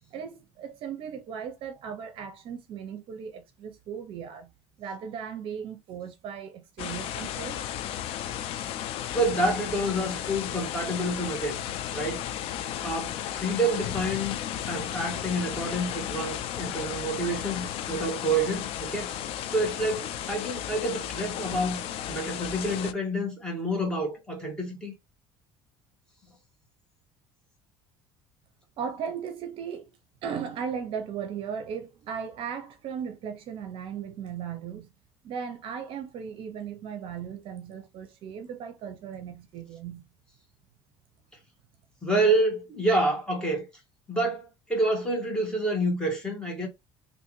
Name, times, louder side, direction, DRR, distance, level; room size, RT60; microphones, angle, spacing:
voice 1, 0.1-4.5 4.8-7.6 28.8-30.0 30.2-34.9 35.2-40.1, right 7 dB, 55° right, 0.7 m, -37 dB
sound 1, 6.8-22.9, left 11 dB, 60° left, 0.4 m, -34 dB
voice 2, 9.1-11.6 11.9-12.3 12.8-14.4 14.6-21.8 22.1-24.9 42.0-43.7 44.1-46.7, right 1 dB, 5° left, 1.6 m, -28 dB
3.4 x 2.6 x 3.1 m
cardioid pair, 140°, 11 cm